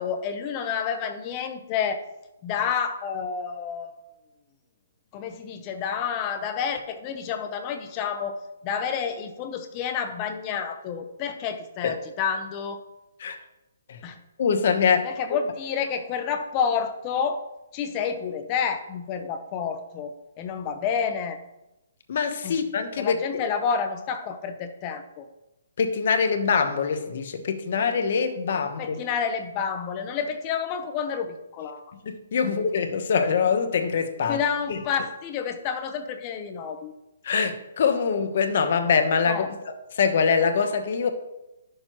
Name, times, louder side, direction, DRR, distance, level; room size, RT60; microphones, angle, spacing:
voice 1, 0.0-2.0 2.4-3.9 5.1-12.8 14.0-14.2 15.0-17.4 17.7-21.4 22.4-22.6 23.0-25.3 28.8-31.9 32.4-32.5 34.3-36.9 39.2-39.5, left 7 dB, 25° left, 7 dB, 0.7 m, -29 dB
voice 2, 14.4-15.1 22.1-23.4 25.8-29.0 31.9-34.4 34.7-34.8 37.2-41.1, left 6 dB, 50° left, 7 dB, 1.0 m, -24 dB
11.0 x 6.6 x 3.0 m, 0.96 s
hypercardioid pair, 165°, 0 cm